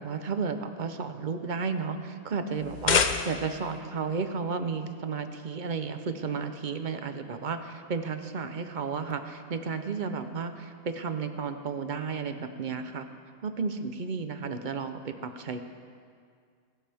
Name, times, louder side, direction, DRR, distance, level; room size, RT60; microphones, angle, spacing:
voice 1, 0.0-13.1 13.4-15.6, right 5 dB, 40° right, 8 dB, 0.7 m, -33 dB
sound 1, 2.6-3.7, left 6 dB, 65° left, 0.4 m, -27 dB
24.0 x 12.5 x 3.5 m, 2.1 s
omnidirectional pair, 1.6 m